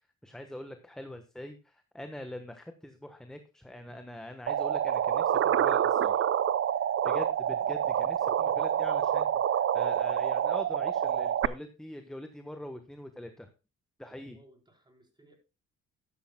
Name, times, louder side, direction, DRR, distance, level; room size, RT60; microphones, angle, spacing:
voice 1, 0.2-6.3 7.0-13.5 14.0-14.4, left 1 dB, ahead, 7 dB, 1.2 m, -43 dB
sound 1, 4.5-11.5, right 9 dB, 45° right, 0.6 m, -27 dB
voice 2, 14.3-15.4, right 1 dB, 15° right, 2 dB, 4.1 m, -60 dB
13.5 x 11.5 x 2.2 m, 0.29 s
cardioid pair, 90°, 30 cm